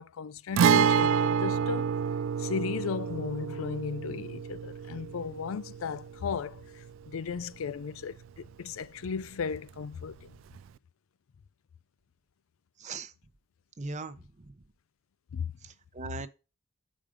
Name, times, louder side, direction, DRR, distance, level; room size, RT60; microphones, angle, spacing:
voice 1, 0.0-1.9 2.4-10.3 15.3-15.5, left 6 dB, 85° left, 0.4 m, -36 dB
Guitar, 0.6-8.2 8.4-8.5 10.6-10.7, right 7 dB, 70° right, 0.3 m, -28 dB
voice 2, 12.8-13.1 13.8-14.5 15.6-16.3, right 4 dB, 35° right, 0.6 m, -40 dB
7.4 x 5.1 x 5.0 m
head